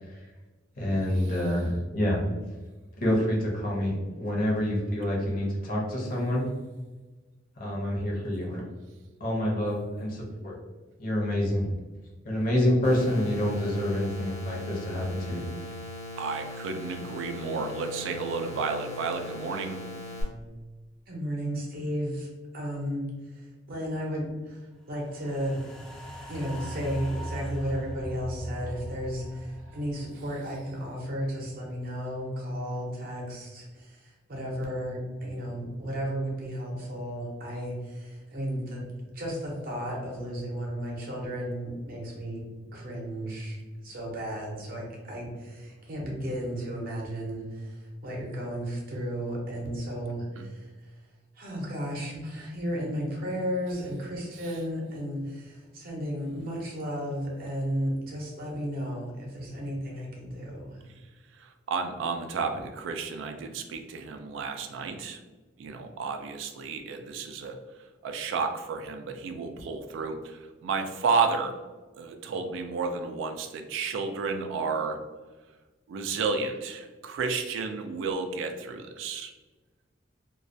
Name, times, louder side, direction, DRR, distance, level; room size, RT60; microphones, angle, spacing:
voice 1, 0.8-2.3 3.0-6.5 7.6-8.6 9.2-10.6 11.0-11.7 12.2-15.5, left 1 dB, 50° left, -2 dB, 0.7 m, -27 dB
sound 1, 12.8-20.2, left 2 dB, 80° left, 0.9 m, -40 dB
voice 2, 16.2-19.8 50.4-50.5 61.7-65.2 65.6-67.6 68.0-70.2 70.6-71.5 71.9-75.0 75.9-79.3, right 4 dB, 90° right, 7 dB, 0.3 m, -31 dB
voice 3, 21.1-22.3 22.5-25.6 26.3-38.8 39.1-42.4 42.7-50.9 51.4-60.8, equal, 50° right, -1 dB, 0.6 m, -34 dB
sound 2, 25.0-31.4 31.8-31.9, right 1 dB, 5° left, 0.3 m, -40 dB
2.2 x 2.1 x 2.5 m, 1.3 s
head